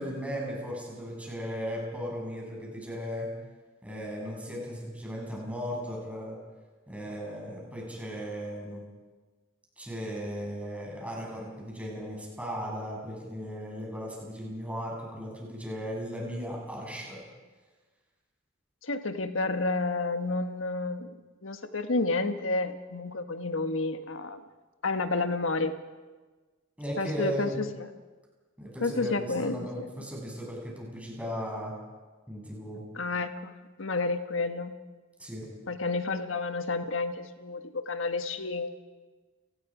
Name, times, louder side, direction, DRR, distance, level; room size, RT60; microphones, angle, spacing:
voice 1, 0.0-3.3 3.8-6.4 6.9-8.8 9.8-17.2 26.8-27.5 28.6-31.7 32.3-32.8 35.2-35.5, equal, 5° right, -3 dB, 7.3 m, -36 dB
voice 2, 18.8-24.4 24.8-25.8 27.0-27.9 28.8-29.9 32.9-34.8 35.7-38.7, left 3 dB, 85° left, 8 dB, 1.5 m, -30 dB
30.0 x 19.0 x 5.1 m, 1.3 s
head